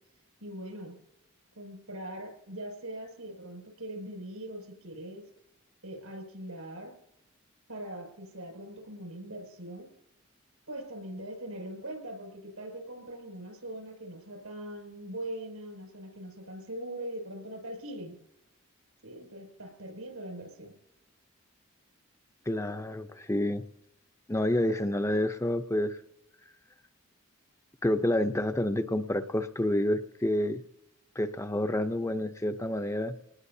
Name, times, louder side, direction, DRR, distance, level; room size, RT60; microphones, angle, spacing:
voice 1, 0.4-1.0 1.5-5.3 5.8-6.9 7.7-9.9 10.7-18.2 19.0-20.8, right 1 dB, 85° right, 2 dB, 6.5 m, -41 dB
voice 2, 22.5-23.6 24.3-26.0 27.8-30.6 31.2-33.1, left 1 dB, 15° left, 8 dB, 0.6 m, -28 dB
26.0 x 19.5 x 2.7 m, 0.83 s
head